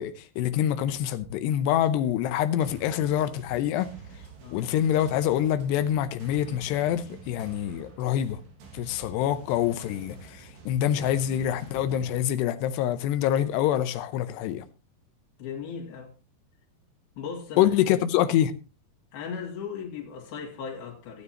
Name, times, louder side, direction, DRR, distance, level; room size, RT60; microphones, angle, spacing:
voice 1, 0.0-3.9 4.5-8.4 8.7-14.6 17.6-18.5, left 11 dB, 90° left, 2.9 m, -26 dB
sound 1, 2.6-12.2, right 4 dB, 85° right, 4.2 m, -47 dB
voice 2, 15.4-16.1 17.2-17.8 19.1-21.2, left 6 dB, 65° left, 4.1 m, -37 dB
17.0 x 9.5 x 2.9 m
omnidirectional pair, 4.7 m